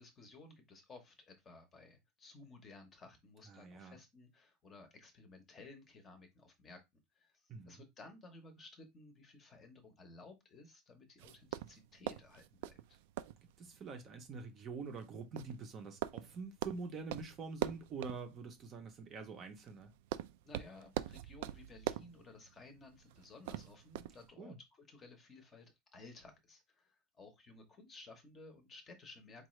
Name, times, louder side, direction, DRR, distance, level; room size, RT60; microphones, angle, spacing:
voice 1, 0.0-6.8 7.1-13.0 20.4-29.5, left 3 dB, 20° left, 0.8 m, -57 dB
voice 2, 3.5-4.0 7.5-7.8 13.6-19.9 24.4-24.6, right 4 dB, 25° right, 0.6 m, -46 dB
sound 1, 11.2-24.3, right 13 dB, 65° right, 0.3 m, -45 dB
4.7 x 2.4 x 3.1 m
supercardioid pair, 170°, 0 cm